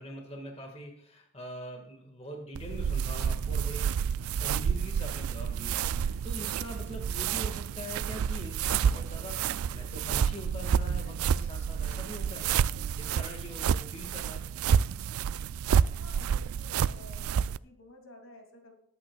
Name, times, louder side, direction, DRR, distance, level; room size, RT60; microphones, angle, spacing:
voice 1, 0.0-12.7 13.0-14.5, equal, 30° left, 2 dB, 1.7 m, -43 dB
sound 1, 2.5-17.6, right 7 dB, 90° right, 0.3 m, -29 dB
sound 2, 8.7-16.6, left 1 dB, 50° right, 2.1 m, -59 dB
voice 2, 15.9-18.7, left 1 dB, 70° left, 3 dB, 2.4 m, -52 dB
20.5 x 8.8 x 2.3 m, 0.71 s
head